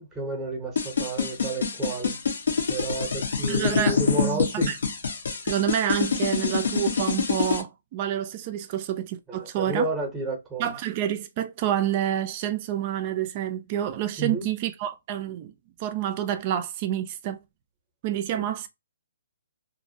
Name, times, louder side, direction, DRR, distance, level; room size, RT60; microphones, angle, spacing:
voice 1, 0.0-2.2 2.7-4.7 9.3-10.7 14.2-14.5, right 2 dB, 5° right, 0.7 m, -31 dB
sound 1, 0.8-7.6, left 5 dB, 70° left, 0.8 m, -25 dB
voice 2, 3.5-4.8 5.4-9.9 10.6-15.5 15.8-17.4 18.0-18.7, right 10 dB, 30° right, 0.3 m, -28 dB
2.5 x 2.0 x 2.6 m
hypercardioid pair, 155°, 0 cm